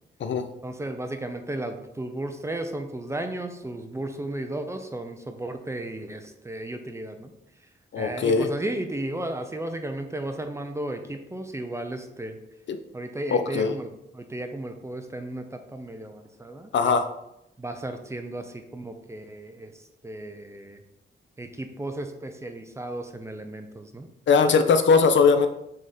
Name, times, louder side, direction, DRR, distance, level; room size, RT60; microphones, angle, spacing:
voice 1, 0.6-7.3 8.0-12.4 12.9-16.7 17.6-20.8 21.4-24.1, right 1 dB, 15° right, 6 dB, 0.5 m, -34 dB
voice 2, 7.9-8.5 12.7-12.8 13.3-13.7 16.7-17.1 24.3-25.5, left 5 dB, 70° left, 9 dB, 0.6 m, -20 dB
6.4 x 3.6 x 4.2 m, 0.83 s
wide cardioid pair, 160°, 20 cm